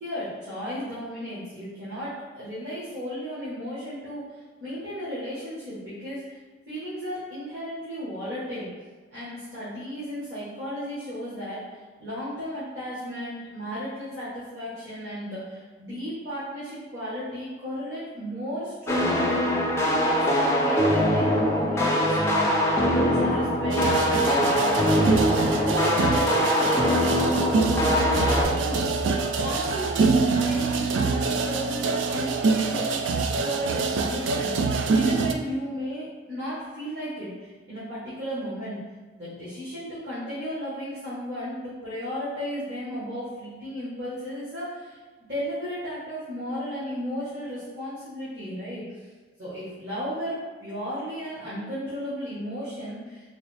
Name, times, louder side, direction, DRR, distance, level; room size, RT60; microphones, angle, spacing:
voice 1, 0.0-6.4 6.7-8.7 9.1-11.6 12.0-25.1 25.4-27.1 27.9-29.0 29.4-38.8 39.2-45.0 45.3-49.1 49.4-53.3, equal, 60° right, -11 dB, 1.1 m, -35 dB
sound 1, 18.9-28.4, equal, 15° left, 0.4 m, -22 dB
sound 2, 23.7-35.3, right 4 dB, 80° right, 0.3 m, -25 dB
3.9 x 2.6 x 3.2 m, 1.4 s
head